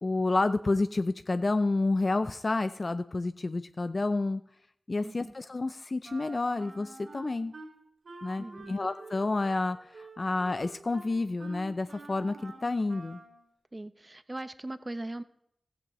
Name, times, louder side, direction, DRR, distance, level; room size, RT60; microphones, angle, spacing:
voice 1, 0.0-4.4 4.9-7.5 8.2-13.2, left 3 dB, 50° left, 11 dB, 0.4 m, -29 dB
voice 2, 5.0-5.3 8.4-8.8 13.7-15.2, right 2 dB, 30° right, 12 dB, 0.7 m, -40 dB
Wind instrument woodwind instrument, 6.0-7.7 8.0-13.4, right 2 dB, 80° right, 4.2 m, -48 dB
16.0 x 13.0 x 3.0 m, 0.75 s
cardioid pair, 45°, 0 cm